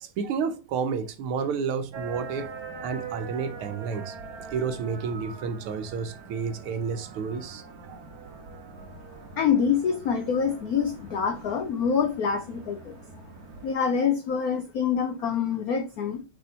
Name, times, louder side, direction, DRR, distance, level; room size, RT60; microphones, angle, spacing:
voice 1, 0.0-4.2 4.5-8.0, right 6 dB, 80° right, 1.7 m, -31 dB
sound 1, 1.9-13.7, right 4 dB, 50° right, 1.3 m, -43 dB
voice 2, 9.4-13.0 13.6-16.2, left 7 dB, 75° left, 0.8 m, -26 dB
6.3 x 3.7 x 4.1 m
omnidirectional pair, 2.4 m